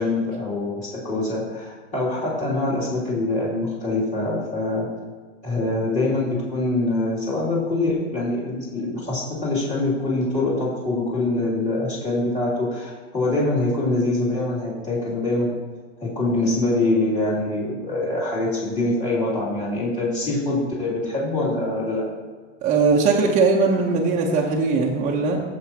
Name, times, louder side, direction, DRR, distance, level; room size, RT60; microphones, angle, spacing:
voice 1, 0.0-4.9 5.4-15.5 16.0-22.0, left 2 dB, 20° left, -9 dB, 3.1 m, -24 dB
voice 2, 22.6-25.4, right 4 dB, 20° right, -3 dB, 1.1 m, -20 dB
14.5 x 7.6 x 3.0 m, 1.5 s
hypercardioid pair, 135°, 38 cm